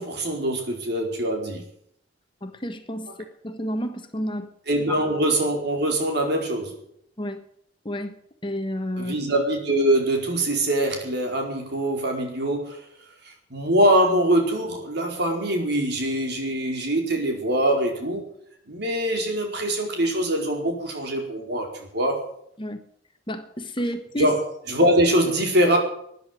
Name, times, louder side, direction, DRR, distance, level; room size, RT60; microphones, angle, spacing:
voice 1, 0.0-1.6 4.7-6.7 9.0-12.8 13.5-18.2 18.7-21.7 21.9-22.2 24.2-24.4 24.7-25.8, right 1 dB, 60° right, 2 dB, 4.7 m, -23 dB
voice 2, 2.4-3.1 3.4-4.5 7.2-7.4 7.8-8.2 8.4-9.1 22.6-22.8 23.3-24.3, equal, 25° left, 8 dB, 1.4 m, -30 dB
14.0 x 10.5 x 9.3 m, 0.68 s
head